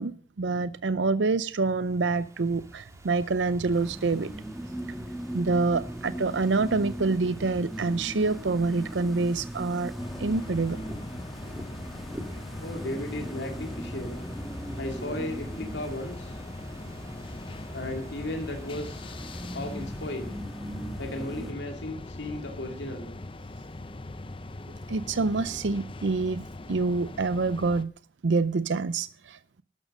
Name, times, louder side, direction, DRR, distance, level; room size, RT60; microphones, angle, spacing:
voice 1, 0.0-4.3 5.3-9.9 10.2-10.8 12.3-12.4 24.9-27.9 28.2-29.6, right 3 dB, 85° right, 0.6 m, -27 dB
Ocean / Fireworks, 1.5-20.7, equal, 15° right, 1.8 m, -49 dB
sound 1, 3.7-21.5, right 1 dB, ahead, 1.5 m, -39 dB
sound 2, 10.0-27.8, left 2 dB, 30° left, 0.7 m, -41 dB
voice 2, 12.6-14.2 14.8-16.4 17.7-19.2 19.5-20.4 21.0-23.1, left 1 dB, 75° left, 2.2 m, -35 dB
13.0 x 10.5 x 6.5 m
head